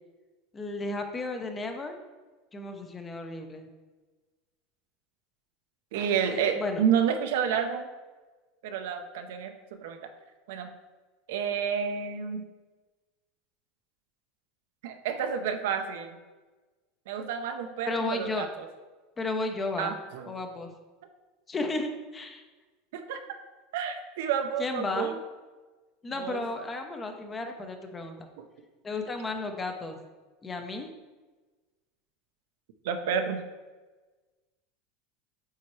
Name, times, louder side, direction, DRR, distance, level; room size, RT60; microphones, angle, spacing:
voice 1, 0.5-2.0 2.5-3.7 6.3-6.8 17.9-18.5 19.2-20.0 20.3-20.7 21.5-22.4 24.6-25.2 26.0-28.2 28.8-30.0 30.4-30.9, left 2 dB, 20° left, 5 dB, 0.8 m, -33 dB
voice 2, 5.9-7.9 8.6-9.5 9.8-10.1 10.5-10.7 11.3-12.5 14.8-16.2 17.1-18.7 19.8-20.3 22.9-23.2 23.7-25.2 26.2-26.4 28.4-28.5 32.8-33.4, right 7 dB, 75° right, 6 dB, 0.7 m, -30 dB
8.3 x 4.2 x 3.2 m, 1.3 s
supercardioid pair, 125°, 0 cm